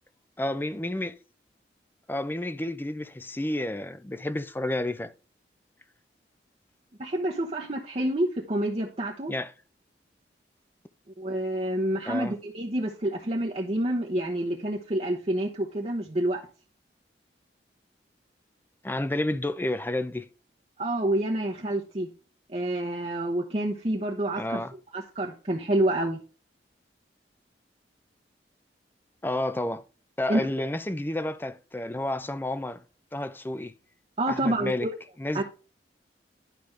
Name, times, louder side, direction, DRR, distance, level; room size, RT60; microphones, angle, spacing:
voice 1, 0.4-1.1 2.1-5.1 9.3-9.5 12.1-12.3 18.8-20.3 24.4-24.7 29.2-29.8 30.2-32.8 33.1-33.7 34.3-34.9 35.2-35.4, left 1 dB, 10° left, 0.4 m, -30 dB
voice 2, 7.0-9.3 11.2-16.4 20.8-22.1 22.5-24.6 24.9-26.2 30.3-30.4 34.2-34.9 35.3-35.4, right 1 dB, 35° right, 0.8 m, -28 dB
11.5 x 5.1 x 3.3 m
head